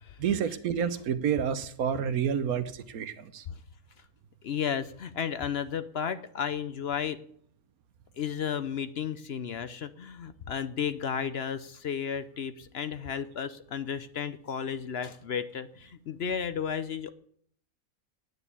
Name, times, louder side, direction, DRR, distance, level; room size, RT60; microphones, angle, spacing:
voice 1, 0.2-3.4, right 8 dB, 90° right, 12 dB, 1.3 m, -29 dB
voice 2, 4.4-7.2 8.2-17.1, left 7 dB, 55° left, 12 dB, 0.8 m, -33 dB
9.8 x 9.1 x 8.3 m, 0.63 s
omnidirectional pair, 1.5 m